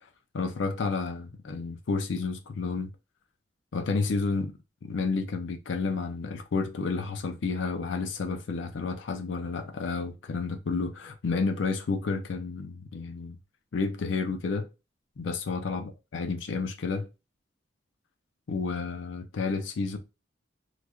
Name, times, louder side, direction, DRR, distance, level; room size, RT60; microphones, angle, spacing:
voice 1, 0.3-2.9 3.7-4.5 4.8-13.4 13.7-14.7 15.2-17.1 18.5-20.0, left 4 dB, 75° left, 0.5 m, -31 dB
3.1 x 2.4 x 2.3 m
head